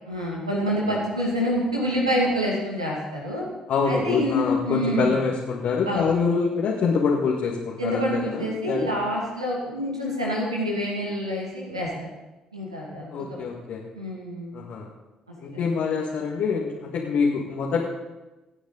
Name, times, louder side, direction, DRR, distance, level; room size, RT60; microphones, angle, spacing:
voice 1, 0.1-3.4 3.9-5.1 5.9-6.1 7.8-12.1 12.5-13.2 13.9-14.5 15.4-15.6, equal, 85° right, -4 dB, 2.2 m, -27 dB
voice 2, 3.7-8.9 13.1-13.8 14.5-14.9 15.4-17.8, left 5 dB, 55° left, -3 dB, 2.0 m, -25 dB
25.5 x 9.4 x 4.1 m, 1.1 s
figure-of-eight pair, 45°, 3 cm